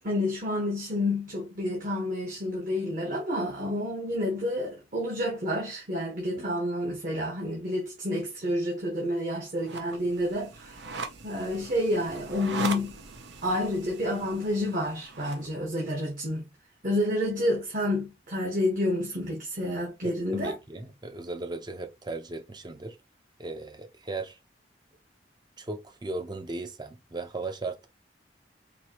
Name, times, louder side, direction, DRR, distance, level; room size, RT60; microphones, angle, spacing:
voice 1, 0.0-10.8 11.2-13.0 13.4-16.4 16.8-20.5, left 1 dB, 50° right, 1.4 m, -29 dB
sound 1, 9.6-15.5, right 3 dB, 70° right, 0.8 m, -40 dB
voice 2, 20.0-23.0 23.4-24.4 25.6-27.9, right 3 dB, 25° right, 0.7 m, -37 dB
4.7 x 2.8 x 3.0 m
head